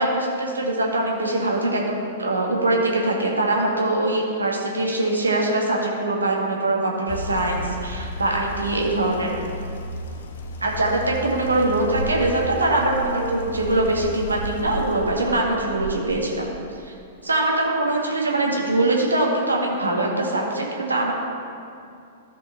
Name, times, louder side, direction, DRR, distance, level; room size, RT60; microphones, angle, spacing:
voice 1, 0.0-9.3 10.6-16.4 16.8-16.9 17.2-21.1, right 2 dB, 75° right, -1 dB, 1.7 m, -22 dB
sound 1, 7.1-16.4, equal, 55° left, 1.1 m, -33 dB
14.0 x 5.4 x 4.2 m, 2.6 s
figure-of-eight pair, 105°, 0 cm